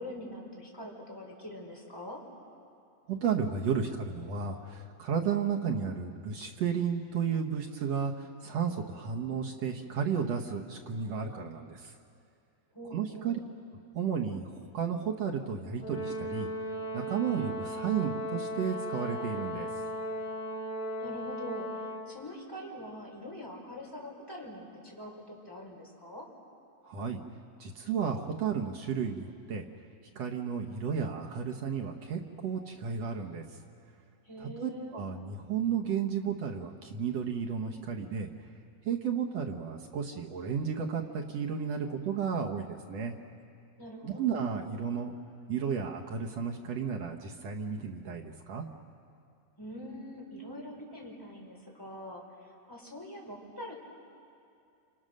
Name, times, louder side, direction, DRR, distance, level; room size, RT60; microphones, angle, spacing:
voice 1, 0.0-2.2 12.7-13.4 21.0-26.3 34.2-35.0 43.8-44.4 49.6-52.2 52.7-53.7, equal, 5° left, -2 dB, 4.0 m, -44 dB
voice 2, 3.1-11.9 12.9-13.4 13.9-16.5 16.9-19.7 26.8-27.2 27.6-29.6 30.1-33.4 34.4-38.3 38.8-43.1 44.0-45.1 45.5-48.6, right 7 dB, 70° right, 1 dB, 1.6 m, -33 dB
Brass instrument, 15.8-22.2, equal, 55° left, 0.8 m, -36 dB
28.5 x 27.5 x 6.5 m, 2.4 s
omnidirectional pair, 4.5 m